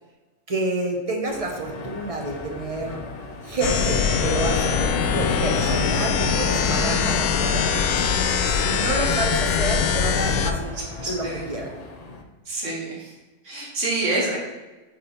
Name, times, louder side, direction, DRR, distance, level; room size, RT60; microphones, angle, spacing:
voice 1, 0.5-3.0 3.4-8.0 8.4-10.6 11.0-11.7, right 2 dB, 35° right, 1 dB, 0.7 m, -29 dB
sound 1, 1.3-12.2, left 2 dB, 55° left, 0.4 m, -38 dB
sound 2, 3.6-10.5, left 6 dB, 90° left, 1.1 m, -22 dB
voice 2, 10.6-11.5 12.5-13.1 13.4-14.4, right 2 dB, 55° right, -3 dB, 1.8 m, -28 dB
4.9 x 4.6 x 4.4 m, 1.2 s
omnidirectional pair, 1.5 m